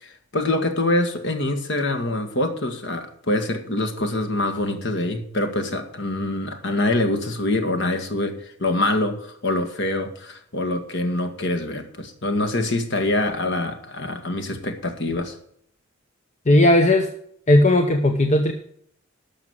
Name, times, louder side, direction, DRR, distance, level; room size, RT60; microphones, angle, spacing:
voice 1, 0.0-8.4 8.6-15.4, left 2 dB, 55° left, 7 dB, 1.8 m, -25 dB
voice 2, 16.5-17.1 17.5-18.5, left 1 dB, 35° left, 5 dB, 0.9 m, -16 dB
12.0 x 6.6 x 7.8 m, 0.66 s
head